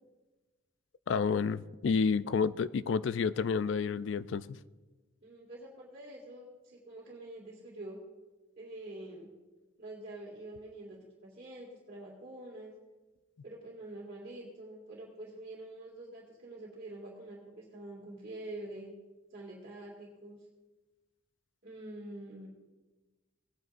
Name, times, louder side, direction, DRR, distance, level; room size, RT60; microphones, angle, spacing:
voice 1, 1.1-4.5, left 5 dB, 65° left, 16 dB, 0.3 m, -30 dB
voice 2, 5.2-8.0 8.6-9.3 9.8-12.7 13.4-18.9 19.3-20.4 21.6-22.5, right 1 dB, 50° right, -7 dB, 2.1 m, -46 dB
18.0 x 9.3 x 2.5 m, 1.2 s
head